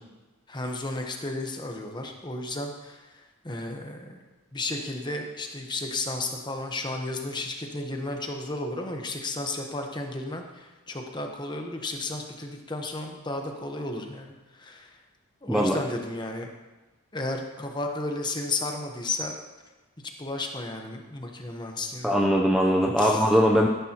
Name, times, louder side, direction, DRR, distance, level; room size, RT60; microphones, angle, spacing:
voice 1, 0.5-3.0 3.4-4.2 4.5-14.9 15.4-16.5 17.1-19.3 20.2-22.1 23.0-23.3, left 2 dB, 20° left, 3 dB, 1.0 m, -33 dB
voice 2, 15.5-15.8 22.0-23.7, equal, ahead, 0 dB, 0.6 m, -21 dB
14.0 x 10.5 x 3.0 m, 1.2 s
head